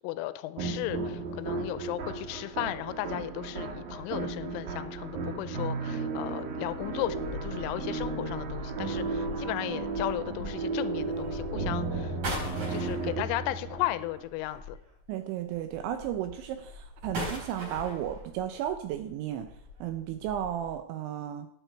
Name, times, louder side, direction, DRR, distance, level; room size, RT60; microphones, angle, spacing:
voice 1, 0.0-14.8, left 16 dB, 85° left, 14 dB, 3.2 m, -35 dB
sound 1, 0.6-14.2, right 3 dB, 55° right, 2.8 m, -34 dB
sound 2, 6.7-15.1 15.5-20.7, left 1 dB, 35° right, 5.7 m, -42 dB
voice 2, 15.1-19.5 19.8-21.5, right 11 dB, 80° right, 8 dB, 2.9 m, -34 dB
18.0 x 8.0 x 4.6 m, 0.72 s
omnidirectional pair, 5.7 m